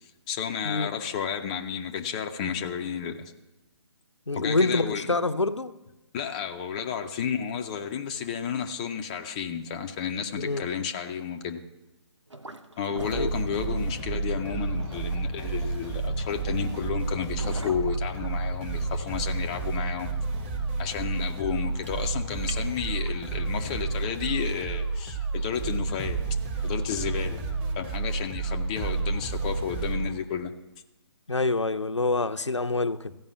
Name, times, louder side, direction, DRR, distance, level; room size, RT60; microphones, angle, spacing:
voice 1, 0.3-3.3 4.4-5.1 6.1-11.6 12.8-20.1 20.8-27.4 27.8-30.5, left 7 dB, 15° left, 0.4 m, -32 dB
voice 2, 4.3-5.7 10.3-10.7 13.1-13.3 31.3-33.2, left 3 dB, 80° left, 0.6 m, -26 dB
sound 1, 12.3-23.3, right 2 dB, 85° right, 0.9 m, -44 dB
sound 2, 13.0-30.1, right 3 dB, 10° right, 0.9 m, -30 dB
14.5 x 5.3 x 8.0 m
figure-of-eight pair, 140°, 15 cm